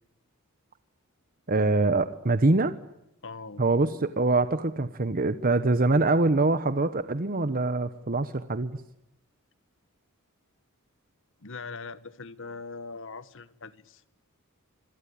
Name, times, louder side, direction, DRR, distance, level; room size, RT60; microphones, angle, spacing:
voice 1, 1.5-2.7 3.6-8.7, right 2 dB, 40° right, 1.0 m, -24 dB
voice 2, 3.2-3.6 11.4-14.0, left 4 dB, 60° left, 1.3 m, -41 dB
27.0 x 22.5 x 8.6 m
head